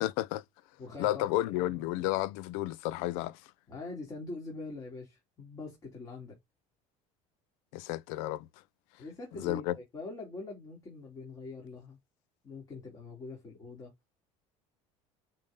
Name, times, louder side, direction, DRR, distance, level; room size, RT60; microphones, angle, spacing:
voice 1, 0.0-0.4 1.0-3.4 7.7-8.5 9.4-9.7, left 15 dB, 80° left, 0.6 m, -31 dB
voice 2, 0.8-1.3 3.7-6.4 9.0-12.0 12.4-13.9, left 3 dB, 25° left, 3.2 m, -43 dB
8.9 x 4.0 x 3.8 m
cardioid pair, 150°, 13 cm